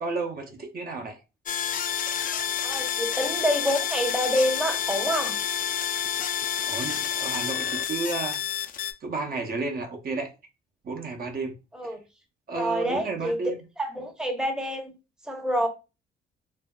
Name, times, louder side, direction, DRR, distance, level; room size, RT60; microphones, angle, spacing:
voice 1, 0.0-1.2 6.6-8.6 9.0-10.3 10.8-11.5 11.8-11.9 12.5-13.6, right 3 dB, 50° right, 0.7 m, -32 dB
sound 1, 1.5-8.9, left 9 dB, 45° left, 0.4 m, -29 dB
voice 2, 2.6-5.4 11.7-12.0 12.6-13.4 13.8-14.9 15.3-15.7, equal, 5° right, 0.7 m, -27 dB
2.7 x 2.7 x 2.2 m
cardioid pair, 90°, 20 cm